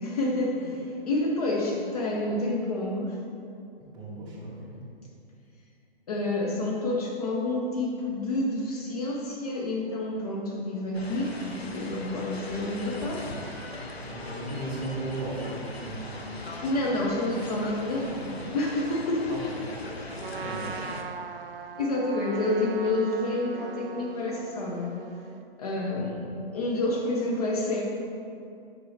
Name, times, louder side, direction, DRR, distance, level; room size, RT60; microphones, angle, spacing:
voice 1, 0.0-3.2 6.1-13.4 16.6-19.3 20.6-20.7 21.8-25.0 25.6-26.3 26.5-27.8, left 2 dB, 40° left, -2 dB, 0.8 m, -29 dB
voice 2, 3.9-4.8 14.0-16.3 19.3-19.7 20.3-20.9 25.9-26.3, right 2 dB, 15° right, -7 dB, 1.4 m, -36 dB
sound 1, 10.9-21.0, left 1 dB, 85° left, 0.9 m, -39 dB
Trumpet, 20.2-25.4, right 6 dB, 65° right, 0.5 m, -40 dB
6.8 x 5.4 x 3.3 m, 2.5 s
figure-of-eight pair, 130°, 30 cm